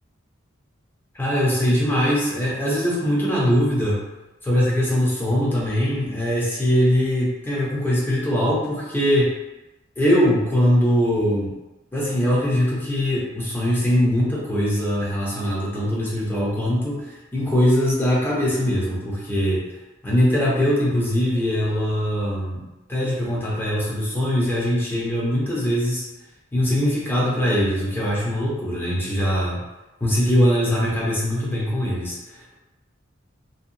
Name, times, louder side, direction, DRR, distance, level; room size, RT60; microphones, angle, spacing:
voice 1, 1.1-4.0 4.4-9.3 10.0-11.5 11.9-19.6 20.0-22.6 22.9-26.0 26.5-29.6 30.0-32.5, equal, 10° left, -6 dB, 0.7 m, -21 dB
2.7 x 2.3 x 2.6 m, 1.0 s
head